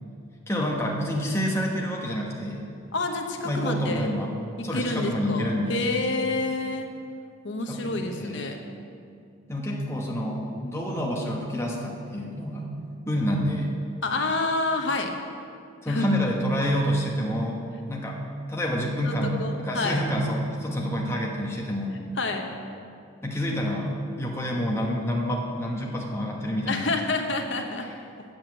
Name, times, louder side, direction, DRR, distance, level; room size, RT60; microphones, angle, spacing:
voice 1, 0.5-2.7 3.4-4.4 4.6-5.8 7.7-8.5 9.5-12.7 13.1-13.7 15.8-17.6 17.9-18.2 18.5-22.0 23.2-27.0, equal, 15° left, -2 dB, 1.0 m, -28 dB
voice 2, 2.9-4.1 4.6-6.9 7.4-8.6 14.0-15.2 15.8-16.1 19.0-20.0 22.2-22.5 26.7-27.9, left 3 dB, 65° left, 4 dB, 0.9 m, -28 dB
7.8 x 7.1 x 7.0 m, 2.4 s
head